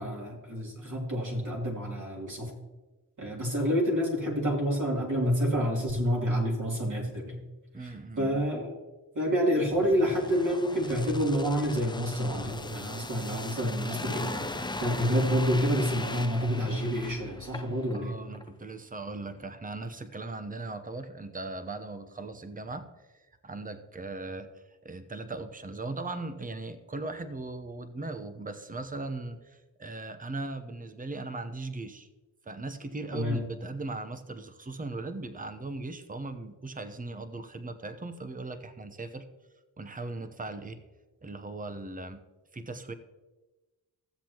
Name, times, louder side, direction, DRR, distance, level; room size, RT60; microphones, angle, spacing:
voice 1, 0.0-2.5 3.2-7.4 7.8-8.7 9.1-14.4 14.8-18.1 33.1-33.4, equal, 45° right, -2 dB, 3.1 m, -28 dB
voice 2, 7.7-8.4 17.9-22.9 23.1-24.5 24.8-32.1 32.4-39.3 39.8-40.8 41.2-42.2 42.5-42.9, right 2 dB, 20° right, 10 dB, 0.9 m, -38 dB
sound 1, 9.7-18.0 18.3-18.5, left 2 dB, 10° left, 0.6 m, -39 dB
15.0 x 7.6 x 2.9 m, 1.2 s
cardioid pair, 55°, 41 cm